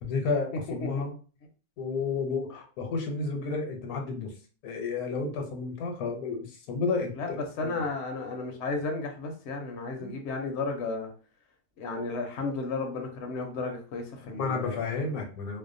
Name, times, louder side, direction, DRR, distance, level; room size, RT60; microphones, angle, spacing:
voice 1, 0.0-1.1 1.8-4.3 4.6-7.8 10.0-10.2 14.3-15.6, left 4 dB, 80° left, 2 dB, 1.1 m, -31 dB
voice 2, 0.5-0.9 7.2-11.1 11.8-14.9, left 3 dB, 65° left, 3 dB, 0.7 m, -33 dB
2.6 x 2.1 x 2.5 m, 0.38 s
omnidirectional pair, 1.5 m